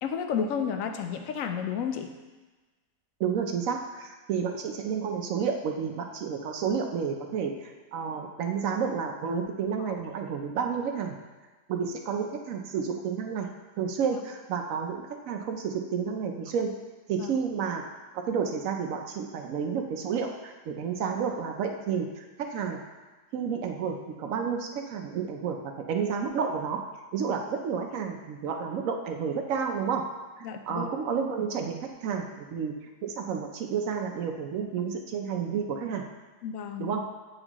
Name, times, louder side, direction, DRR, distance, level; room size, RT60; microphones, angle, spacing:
voice 1, 0.0-2.1 14.1-14.2 17.2-17.3 30.4-30.9 36.4-36.9, left 7 dB, 70° left, 6 dB, 0.9 m, -31 dB
voice 2, 3.2-11.1 11.7-13.5 13.8-16.7 17.1-17.8 18.1-22.8 23.3-30.1 30.4-36.0 36.8-37.1, right 6 dB, 70° right, 3 dB, 0.9 m, -31 dB
8.7 x 4.2 x 2.9 m, 1.2 s
omnidirectional pair, 1.7 m